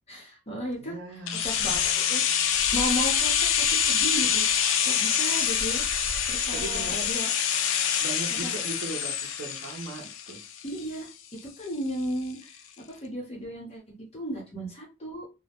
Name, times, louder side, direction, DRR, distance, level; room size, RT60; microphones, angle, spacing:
voice 1, 0.1-5.9 6.3-7.3 8.4-8.5 10.6-15.3, equal, 30° left, -1 dB, 0.9 m, -35 dB
voice 2, 0.8-1.5 6.5-7.1 8.0-10.4, right 3 dB, 75° right, -3 dB, 0.6 m, -38 dB
sound 1, 1.3-11.1 11.4-11.5, left 8 dB, 70° left, 0.4 m, -26 dB
2.1 x 2.0 x 2.9 m, 0.28 s
head